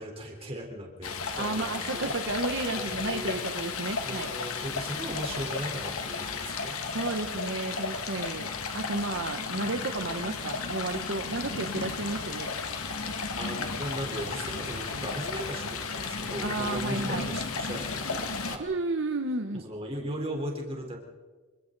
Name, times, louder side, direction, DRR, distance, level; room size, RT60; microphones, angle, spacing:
voice 1, 0.0-2.1 2.8-3.4 4.0-6.8 13.4-18.7 19.5-21.0, right 1 dB, 25° right, 0 dB, 4.1 m, -37 dB
Stream, 1.0-18.6, left 4 dB, 80° left, 2.1 m, -34 dB
voice 2, 1.4-4.3 6.9-8.5 8.7-12.5 16.4-17.3 18.6-19.6, right 2 dB, 55° right, 5 dB, 1.1 m, -32 dB
26.5 x 26.0 x 4.1 m, 1.4 s
head